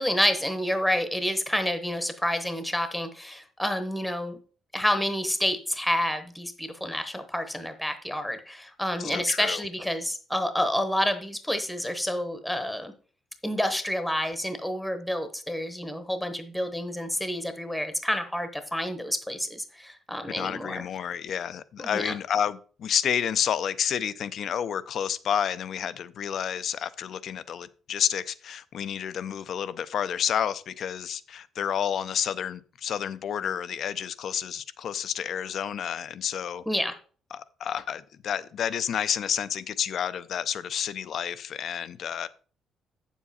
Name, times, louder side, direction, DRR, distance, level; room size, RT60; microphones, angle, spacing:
voice 1, 0.0-4.4 4.7-12.9 13.4-20.8 21.8-22.1 36.7-36.9, left 1 dB, 5° left, 0.9 m, -29 dB
voice 2, 9.0-9.6 20.3-36.6 37.3-42.3, left 8 dB, 55° left, 0.5 m, -30 dB
8.3 x 7.3 x 4.2 m
cardioid pair, 130°, 0 cm